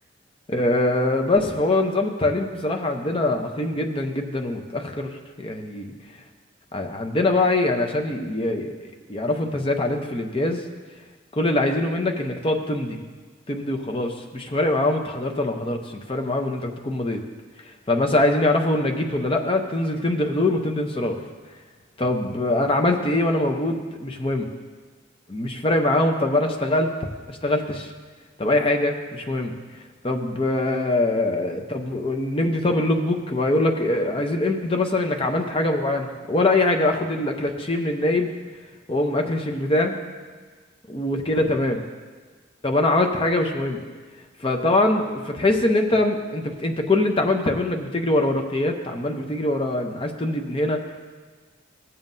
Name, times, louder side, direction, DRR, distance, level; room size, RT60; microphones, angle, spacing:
voice 1, 0.5-5.9 6.7-10.6 11.3-13.0 13.5-17.2 17.9-21.2 22.0-24.5 25.3-27.0 27.3-27.9 28.4-29.6 30.0-38.3 38.9-40.0 40.9-41.8 42.6-43.8 44.4-51.0, left 2 dB, 25° left, 4 dB, 0.7 m, -23 dB
15.5 x 7.3 x 2.6 m, 1.4 s
head